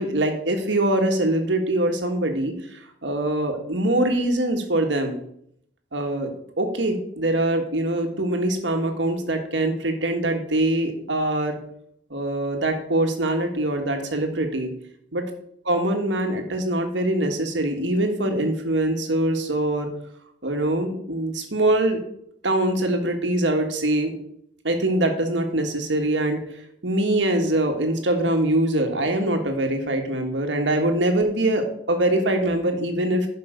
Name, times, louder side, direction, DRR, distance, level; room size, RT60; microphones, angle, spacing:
voice 1, 0.0-5.2 5.9-6.3 6.6-11.6 12.1-14.7 15.1-15.2 15.6-19.9 20.4-22.0 22.4-24.1 24.6-26.4 26.8-33.3, right 1 dB, 80° right, 4 dB, 1.6 m, -23 dB
11.0 x 5.4 x 5.1 m, 0.72 s
head